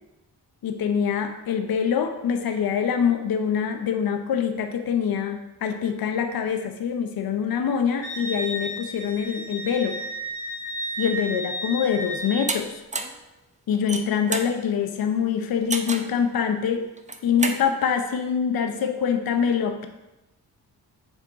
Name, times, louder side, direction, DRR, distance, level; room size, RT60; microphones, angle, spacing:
voice 1, 0.6-10.0 11.0-12.8 13.7-16.8 17.2-19.9, left 7 dB, 60° left, 6 dB, 0.7 m, -25 dB
Wind instrument woodwind instrument, 8.0-12.5, equal, 35° left, 2.2 m, -33 dB
sound 1, 12.5-12.6 12.9-13.2 13.7-14.5 15.7-16.1 17.0-17.6, right 3 dB, 20° right, 0.7 m, -29 dB
7.2 x 3.6 x 3.9 m, 0.99 s
supercardioid pair, 45°, 41 cm